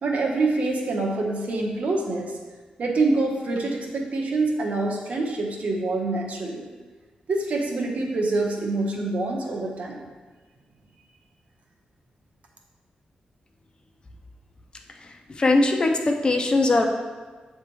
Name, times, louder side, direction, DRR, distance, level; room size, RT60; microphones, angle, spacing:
voice 1, 0.0-2.3 2.8-6.7 7.3-10.1, right 2 dB, 60° right, -1 dB, 1.0 m, -26 dB
voice 2, 15.0-16.8, left 2 dB, 35° left, 4 dB, 0.6 m, -21 dB
7.7 x 3.4 x 4.6 m, 1.4 s
wide cardioid pair, 135°, 3 cm